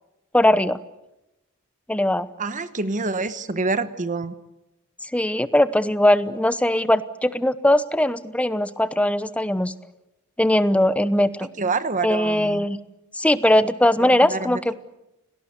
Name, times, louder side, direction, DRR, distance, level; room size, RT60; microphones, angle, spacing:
voice 1, 0.3-0.8 1.9-2.3 5.1-9.7 10.4-11.5 12.0-12.8 13.2-14.9, left 1 dB, 5° left, 14 dB, 0.9 m, -20 dB
voice 2, 2.4-4.3 11.6-12.7 14.0-14.6, right 3 dB, 35° right, 12 dB, 1.1 m, -27 dB
29.0 x 18.5 x 8.2 m, 0.94 s
head